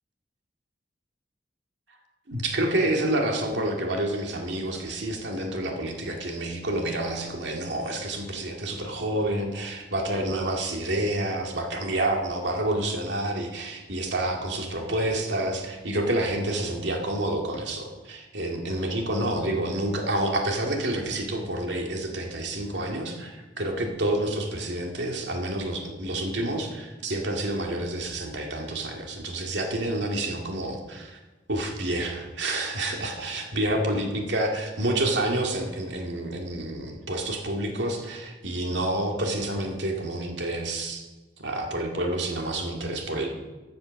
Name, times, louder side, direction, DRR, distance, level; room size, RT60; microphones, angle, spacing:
voice 1, 2.3-31.2 31.5-41.0 41.4-43.3, right 1 dB, 75° right, 2 dB, 2.1 m, -28 dB
14.0 x 8.0 x 6.4 m, 1.2 s
head